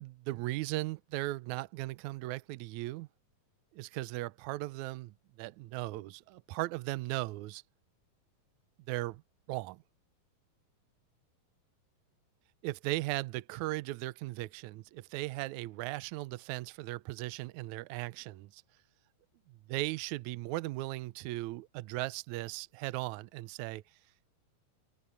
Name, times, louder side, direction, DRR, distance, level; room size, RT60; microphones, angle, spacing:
voice 1, 0.0-3.1 3.7-7.6 8.9-9.2 9.5-9.8 12.6-18.6 19.5-23.8, right 19 dB, 85° right, 1.7 m, -37 dB
omnidirectional pair, 4.0 m